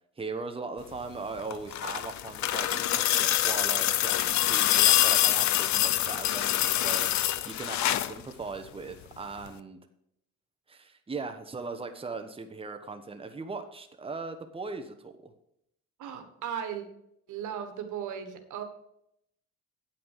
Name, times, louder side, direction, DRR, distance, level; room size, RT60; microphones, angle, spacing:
voice 1, 0.2-7.1 7.5-9.8 10.7-15.3, right 4 dB, 20° right, 6 dB, 1.0 m, -39 dB
sound 1, 1.4-8.2 9.5-9.6, left 13 dB, 70° left, 0.6 m, -25 dB
voice 2, 16.0-16.9 17.3-18.6, right 8 dB, 80° right, 7 dB, 1.5 m, -36 dB
9.2 x 5.8 x 6.6 m, 0.76 s
cardioid pair, 90°, 30 cm